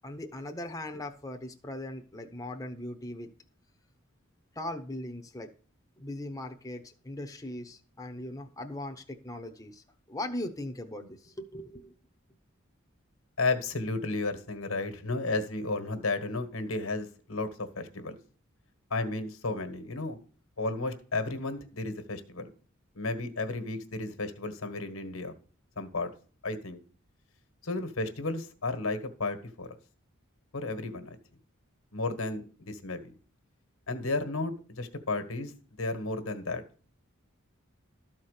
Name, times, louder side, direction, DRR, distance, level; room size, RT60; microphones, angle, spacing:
voice 1, 0.0-3.3 4.5-5.5 6.0-12.0, left 1 dB, 15° left, 4 dB, 0.8 m, -39 dB
voice 2, 13.4-18.2 18.9-20.2 20.6-22.5 22.9-25.3 25.8-26.1 26.4-26.8 27.6-29.8 30.5-31.2 31.9-33.1 33.9-35.5 35.8-36.6, left 3 dB, 80° left, 9 dB, 1.4 m, -33 dB
13.0 x 4.4 x 6.5 m, 0.41 s
head